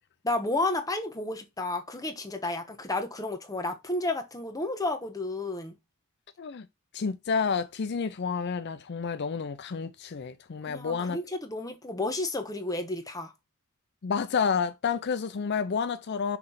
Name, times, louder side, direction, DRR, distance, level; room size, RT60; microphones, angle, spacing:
voice 1, 0.2-5.7 10.7-13.3, left 2 dB, 15° left, 1.1 m, -31 dB
voice 2, 6.9-11.2 14.0-16.4, left 6 dB, 50° left, 0.5 m, -30 dB
6.0 x 3.2 x 5.6 m
head